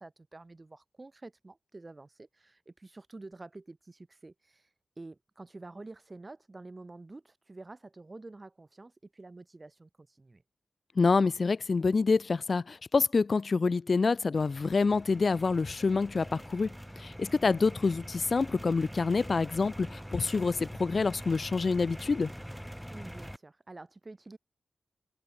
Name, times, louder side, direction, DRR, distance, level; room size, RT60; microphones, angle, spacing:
voice 1, 0.0-4.7 5.0-10.4 22.9-24.4, right 2 dB, 30° right, 3.5 m, -49 dB
voice 2, 11.0-22.3, left 4 dB, 50° left, 0.6 m, -27 dB
sound 1, 14.4-23.4, equal, ahead, 2.8 m, -44 dB
cardioid pair, 60°, 0 cm